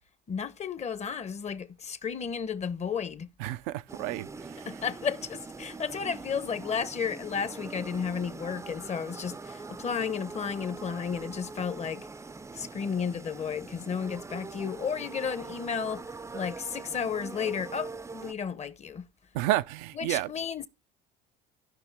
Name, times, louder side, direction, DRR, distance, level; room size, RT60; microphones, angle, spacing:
voice 1, 0.3-3.3 4.7-12.1 12.5-19.0 19.9-20.7, left 6 dB, 35° left, 0.9 m, -33 dB
voice 2, 3.4-4.8 19.3-20.3, right 16 dB, 80° right, 0.5 m, -31 dB
sound 1, 3.9-18.3, right 4 dB, 15° right, 0.5 m, -43 dB
14.5 x 5.4 x 3.4 m
supercardioid pair, 75°, 20 cm